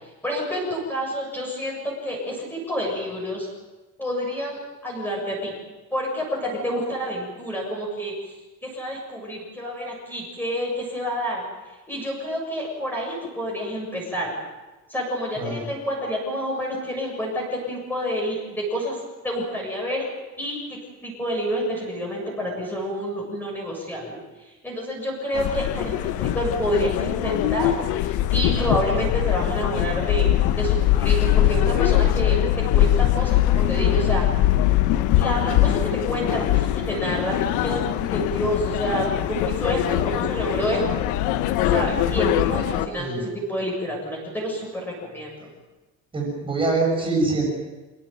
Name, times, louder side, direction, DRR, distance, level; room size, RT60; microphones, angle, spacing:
voice 1, 0.2-3.5 4.0-5.5 5.9-8.3 8.6-11.4 11.9-14.4 14.9-20.1 20.4-30.3 30.6-32.4 32.7-34.2 35.2-41.1 41.7-45.5, equal, 5° left, -2 dB, 7.3 m, -28 dB
voice 2, 15.4-15.7 43.0-43.2 46.1-47.5, right 3 dB, 15° right, -1 dB, 7.0 m, -24 dB
sound 1, 25.3-42.9, left 13 dB, 75° left, 1.4 m, -22 dB
27.0 x 18.0 x 9.2 m, 1.2 s
cardioid pair, 175°, 30 cm